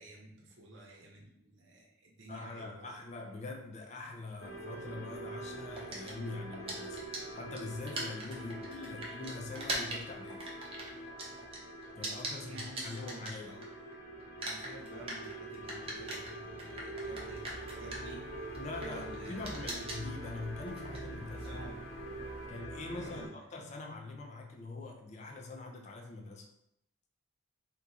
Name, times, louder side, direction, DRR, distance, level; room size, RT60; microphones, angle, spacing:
voice 1, 0.0-2.9 8.3-8.7 9.0-9.2 12.4-13.7 14.4-19.7 21.4-21.9 23.0-23.5, right 1 dB, 65° right, -1 dB, 0.7 m, -52 dB
voice 2, 2.3-7.0 7.3-10.5 12.0-13.6 18.5-21.6 22.5-26.5, left 3 dB, 35° left, 1 dB, 0.4 m, -43 dB
sound 1, 4.4-23.3, right 1 dB, 70° left, 1.2 m, -44 dB
sound 2, 5.8-13.9 14.2-22.5, right 2 dB, 25° right, 0.5 m, -42 dB
2.8 x 2.3 x 3.8 m, 0.79 s
head